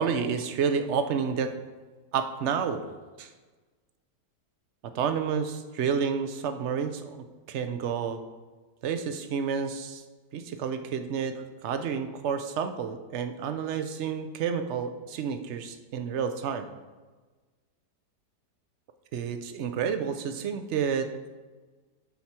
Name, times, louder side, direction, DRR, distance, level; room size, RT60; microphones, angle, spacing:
voice 1, 0.0-1.5 2.1-2.8 3.2-3.3 4.8-8.2 8.8-10.0 10.3-16.7 19.1-21.3, right 6 dB, 60° right, 8 dB, 0.8 m, -30 dB
13.0 x 4.6 x 4.4 m, 1.3 s
omnidirectional pair, 1.8 m